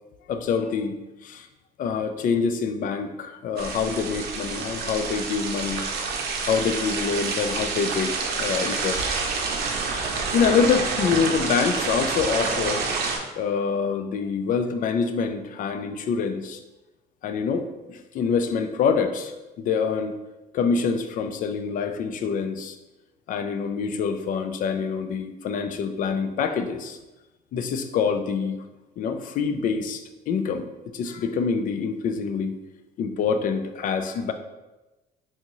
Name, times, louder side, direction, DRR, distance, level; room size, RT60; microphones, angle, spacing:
voice 1, 0.3-1.0 1.2-1.5 1.8-5.9 6.4-9.2 10.3-12.8 13.4-16.6 17.2-20.1 20.5-22.8 23.3-27.0 27.5-28.6 29.0-30.7 30.9-32.6 33.0-34.3, left 6 dB, 55° left, 8 dB, 0.4 m, -26 dB
sound 1, 3.6-13.2, right 4 dB, 70° right, 0.6 m, -28 dB
3.4 x 2.8 x 3.0 m, 1.1 s
cardioid pair, 110°, 17 cm